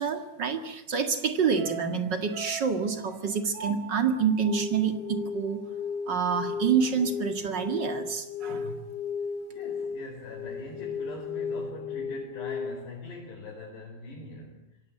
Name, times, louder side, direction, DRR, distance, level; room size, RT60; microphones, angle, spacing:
voice 1, 0.0-5.7 6.1-8.8, right 6 dB, 70° right, 7 dB, 1.0 m, -27 dB
sound 1, 1.5-5.9 6.2-6.3, right 7 dB, 30° right, 7.1 m, -43 dB
sound 2, 4.4-12.9, left 5 dB, 40° left, 3.6 m, -35 dB
voice 2, 9.5-14.6, left 3 dB, 65° left, -1 dB, 6.7 m, -42 dB
27.5 x 24.0 x 8.6 m, 0.80 s
omnidirectional pair, 5.2 m